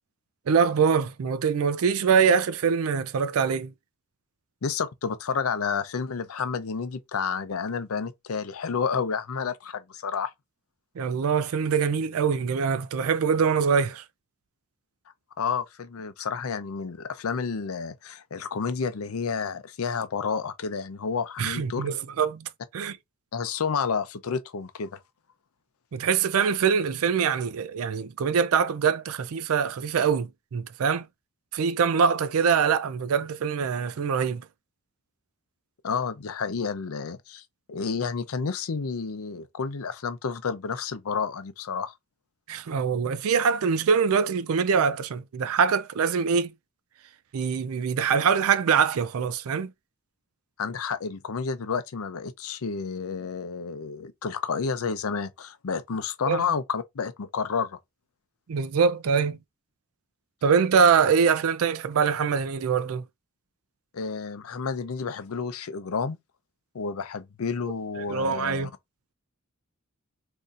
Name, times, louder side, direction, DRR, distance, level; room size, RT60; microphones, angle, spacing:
voice 1, 0.5-3.7 11.0-14.0 21.4-23.0 25.9-31.1 31.5-34.5 42.5-46.5 47.3-49.7 56.3-56.4 58.5-59.4 60.4-63.0 68.0-68.7, right 6 dB, 80° right, 0.4 m, -24 dB
voice 2, 4.6-10.3 15.4-21.9 23.3-25.0 35.8-37.4 37.7-41.9 50.6-57.8 63.9-66.2 66.7-68.7, left 5 dB, 80° left, 0.6 m, -30 dB
2.7 x 2.5 x 3.9 m
head